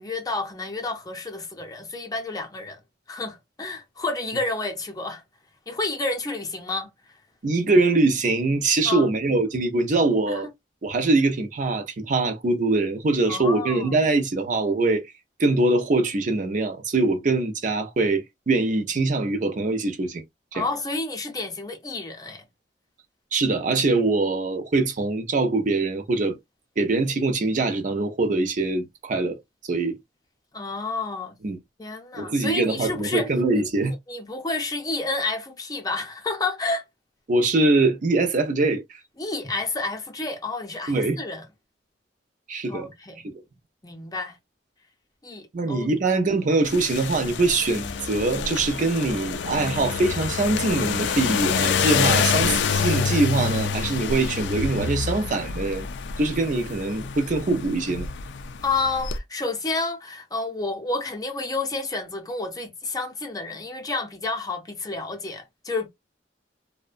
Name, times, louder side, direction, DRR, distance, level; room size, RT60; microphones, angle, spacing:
voice 1, 0.0-2.8 3.1-5.2 5.7-6.9 8.9-9.1 10.3-10.5 13.3-14.0 20.5-22.4 30.5-31.4 31.8-33.3 34.1-36.8 39.2-41.4 42.7-43.2 43.8-44.4 45.2-45.9 58.6-65.9, left 3 dB, 20° left, 0.6 m, -30 dB
voice 2, 7.4-10.5 10.8-15.0 15.4-20.2 20.5-20.7 23.3-26.4 26.8-29.4 29.7-30.0 31.4-31.6 32.2-33.9 37.3-38.8 40.9-41.2 42.5-42.9 43.2-43.4 45.5-55.9 56.2-58.1, right 3 dB, 45° right, 0.5 m, -23 dB
sound 1, 46.6-59.2, left 6 dB, 75° left, 0.4 m, -27 dB
2.6 x 2.1 x 2.4 m
head